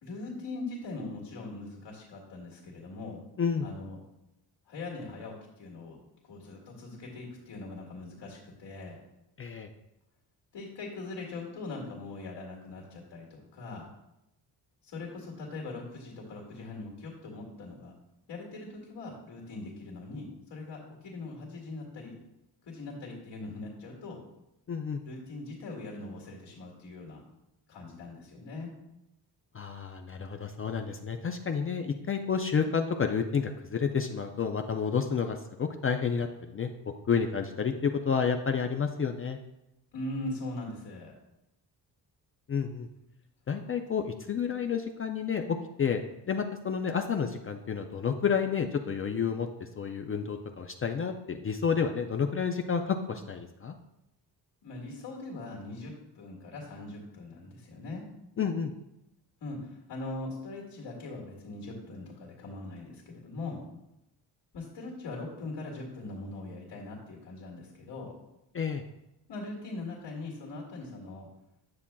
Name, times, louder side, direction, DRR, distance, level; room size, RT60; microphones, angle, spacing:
voice 1, 0.0-3.2 3.6-4.0 4.7-6.0 6.2-9.0 10.5-13.9 14.8-17.9 18.3-22.2 22.6-24.2 25.0-27.2 27.7-28.7 39.9-41.2 54.6-58.0 59.4-63.6 64.5-68.1 69.3-71.3, left 2 dB, 65° left, -2 dB, 2.1 m, -41 dB
voice 2, 3.4-3.7 9.4-9.7 24.7-25.0 29.5-36.7 37.1-39.4 42.5-42.9 43.5-46.0 46.3-53.8 58.4-58.7 68.5-68.8, left 6 dB, 30° left, 5 dB, 0.4 m, -30 dB
9.7 x 7.0 x 2.3 m, 0.88 s
cardioid pair, 115°, 43 cm